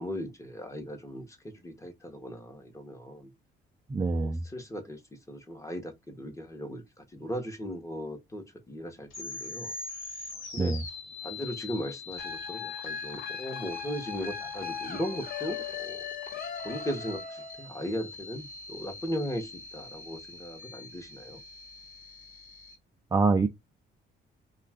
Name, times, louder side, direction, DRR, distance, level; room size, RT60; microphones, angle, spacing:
voice 1, 0.0-3.3 4.1-9.8 10.5-10.7 11.2-16.1 16.6-21.4, equal, 15° left, 0.9 m, -38 dB
voice 2, 3.9-4.4 10.6-10.8 23.1-23.5, right 3 dB, 15° right, 0.3 m, -25 dB
sound 1, 9.1-22.8, left 3 dB, 80° left, 1.4 m, -43 dB
sound 2, 12.2-17.7, left 7 dB, 50° left, 0.5 m, -39 dB
2.4 x 2.3 x 3.5 m
cardioid pair, 90°, 20 cm